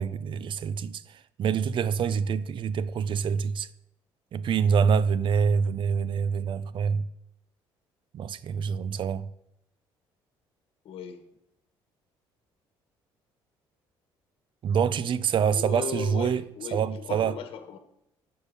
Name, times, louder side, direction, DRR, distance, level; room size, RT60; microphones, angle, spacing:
voice 1, 0.0-3.7 4.3-7.1 8.1-9.3 14.6-16.4 16.7-17.3, right 6 dB, 55° right, 0.6 m, -26 dB
voice 2, 10.8-11.2 15.5-17.8, left 6 dB, 60° left, 1.4 m, -37 dB
10.5 x 6.8 x 5.2 m
supercardioid pair, 80°, 10 cm